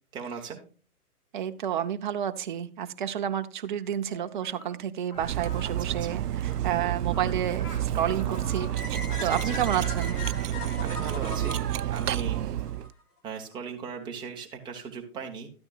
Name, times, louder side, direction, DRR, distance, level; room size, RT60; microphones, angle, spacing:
voice 1, 0.1-0.6 5.6-5.9 9.1-9.6 10.8-11.6 11.9-12.4 13.2-15.5, right 6 dB, 10° right, 1 dB, 0.9 m, -38 dB
voice 2, 1.3-10.2, right 10 dB, 35° right, 8 dB, 0.6 m, -30 dB
sound 1, 4.1-4.8 5.1-10.1, left 2 dB, 25° left, 3.9 m, -48 dB
Cutlery silverware, 5.2-12.9, right 12 dB, 90° right, 0.5 m, -30 dB
sound 2, 8.8-12.9, left 3 dB, 75° left, 2.4 m, -39 dB
12.0 x 9.6 x 2.3 m, 0.37 s
hypercardioid pair, 140°, 46 cm